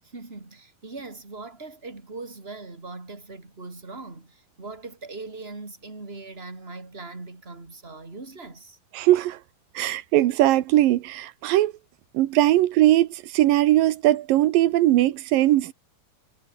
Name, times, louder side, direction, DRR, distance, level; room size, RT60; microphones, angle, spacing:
voice 1, 0.0-8.8, right 3 dB, 15° right, 4.0 m, -40 dB
voice 2, 8.9-9.4 9.7-11.7 12.1-15.7, right 15 dB, 85° right, 2.7 m, -20 dB
omnidirectional pair, 4.0 m